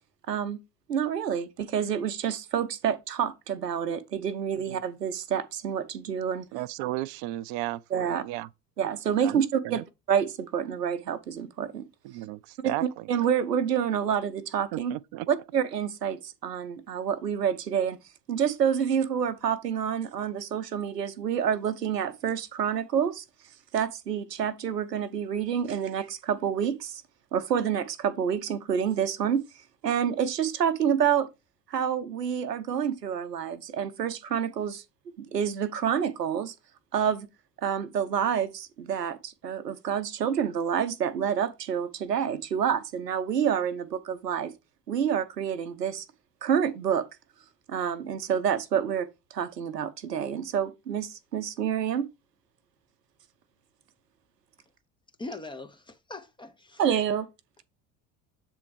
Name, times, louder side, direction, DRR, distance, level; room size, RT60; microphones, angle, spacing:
voice 1, 0.3-0.6 0.9-6.5 7.9-8.2 8.8-9.8 10.1-11.9 12.8-14.9 15.3-18.0 18.3-23.2 23.7-27.0 27.3-29.4 29.8-31.3 31.7-36.5 36.9-37.3 37.6-44.5 44.9-46.1 46.4-47.0 47.7-52.1 56.8-57.3, right 8 dB, 85° right, 0.7 m, -28 dB
voice 2, 6.5-8.5 9.2-9.8 12.0-13.1 14.7-15.3, right 16 dB, 45° right, 0.4 m, -35 dB
voice 3, 55.2-56.8, left 2 dB, 10° left, 0.5 m, -41 dB
7.5 x 3.5 x 4.6 m
figure-of-eight pair, 65°, 48 cm